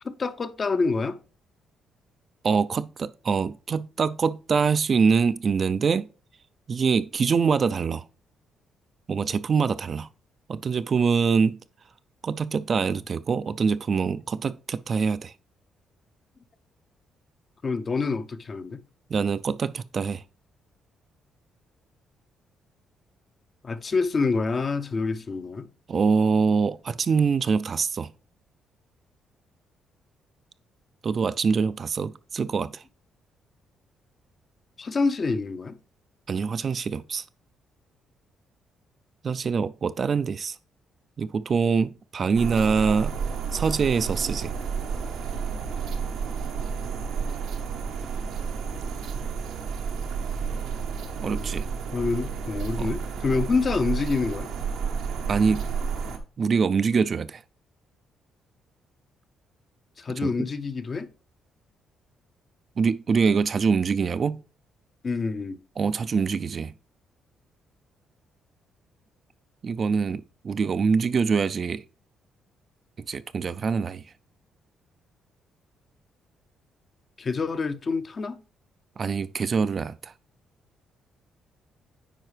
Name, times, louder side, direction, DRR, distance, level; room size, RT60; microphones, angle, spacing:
voice 1, 0.0-1.2 17.6-18.8 23.6-25.7 34.8-35.8 51.2-51.6 51.9-54.5 60.0-61.1 65.0-65.6 77.2-78.4, left 4 dB, 40° left, 0.6 m, -27 dB
voice 2, 2.4-6.1 6.7-8.0 9.1-10.1 10.5-11.6 12.2-15.3 19.1-20.2 25.9-28.1 31.0-32.8 36.3-37.2 39.2-40.6 41.2-43.2 43.5-44.5 51.2-51.7 52.8-52.9 55.3-55.6 56.4-57.4 60.2-60.5 62.8-64.4 65.8-66.7 69.6-71.8 73.1-74.0 79.0-80.1, right 5 dB, 45° right, 0.3 m, -24 dB
sound 1, 42.3-56.2, right 6 dB, 85° right, 0.9 m, -31 dB
8.9 x 4.8 x 3.3 m
cardioid pair, 90°, 0 cm